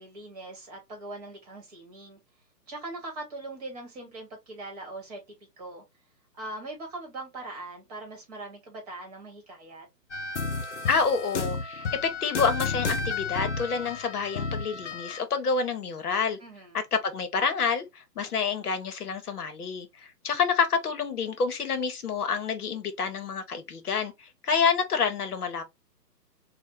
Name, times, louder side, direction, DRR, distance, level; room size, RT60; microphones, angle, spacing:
voice 1, 0.0-2.2 2.7-5.2 5.6-5.8 6.4-9.9 16.4-16.8, right 2 dB, 25° right, 1.1 m, -41 dB
sound 1, 10.1-15.2, left 4 dB, 50° left, 0.5 m, -32 dB
voice 2, 10.9-16.4 16.7-25.6, left 5 dB, 65° left, 0.9 m, -28 dB
3.3 x 2.1 x 3.1 m
hypercardioid pair, 150°, 50 cm